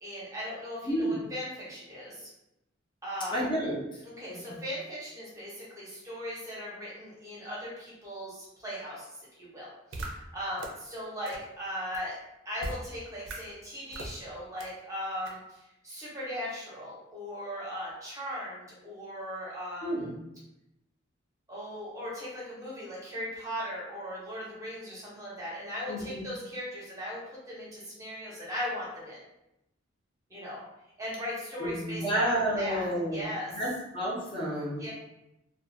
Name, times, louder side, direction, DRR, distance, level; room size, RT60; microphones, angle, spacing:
voice 1, 0.0-2.3 3.0-3.4 4.0-12.2 12.4-20.1 21.5-29.2 30.3-30.6 31.0-32.2 32.5-33.5 34.8-34.9, equal, 15° right, -7 dB, 0.9 m, -38 dB
voice 2, 0.8-1.2 3.3-3.8 4.3-4.6 19.8-20.2 25.9-26.3 31.6-34.9, right 1 dB, 25° left, -5 dB, 0.7 m, -31 dB
sound 1, 9.9-10.1 10.6-10.7 11.3-11.4 11.9-12.0 12.6-12.8 13.3-13.4 13.9-14.1 14.6-14.7 15.3-15.4, right 2 dB, 75° right, 0.5 m, -37 dB
2.4 x 2.3 x 2.6 m, 0.88 s
head